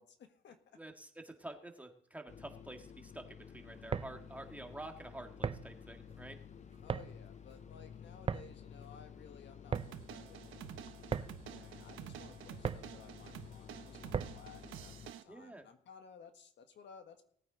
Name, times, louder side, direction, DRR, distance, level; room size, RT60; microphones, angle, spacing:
voice 1, 0.0-0.8 6.8-17.2, left 6 dB, 65° left, 7 dB, 1.6 m, -58 dB
voice 2, 0.8-6.4 15.3-15.6, right 1 dB, 5° right, 3 dB, 1.8 m, -49 dB
sound 1, 2.3-15.1, left 8 dB, 35° left, 0.5 m, -53 dB
sound 2, 3.7-14.6, right 6 dB, 30° right, 0.6 m, -42 dB
sound 3, 9.7-15.2, right 10 dB, 85° right, 1.0 m, -50 dB
18.5 x 9.1 x 3.9 m, 0.65 s
cardioid pair, 90°, 20 cm